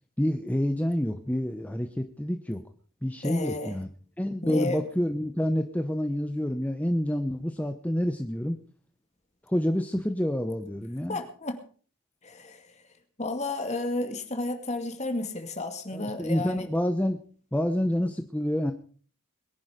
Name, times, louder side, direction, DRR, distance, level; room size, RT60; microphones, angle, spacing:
voice 1, 0.2-2.6 3.0-3.9 4.2-8.6 9.5-11.2 15.9-17.2 17.5-18.7, equal, 5° left, 7 dB, 0.8 m, -28 dB
voice 2, 3.2-3.8 4.4-4.8 11.1-11.6 12.2-12.7 13.2-16.6, left 2 dB, 30° left, 6 dB, 2.3 m, -32 dB
22.0 x 10.5 x 5.1 m, 0.43 s
head